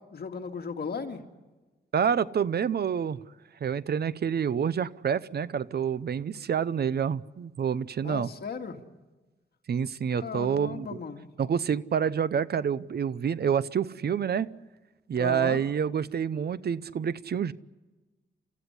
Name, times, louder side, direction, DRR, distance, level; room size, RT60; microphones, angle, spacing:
voice 1, 0.1-1.2 8.0-8.8 10.2-11.3 15.2-15.6, left 5 dB, 55° left, 4 dB, 2.4 m, -36 dB
voice 2, 1.9-3.2 3.6-8.3 9.7-10.9 11.4-14.5 15.1-17.5, right 7 dB, 60° right, 17 dB, 0.7 m, -28 dB
30.0 x 15.0 x 9.8 m, 1.2 s
wide cardioid pair, 125°, 19 cm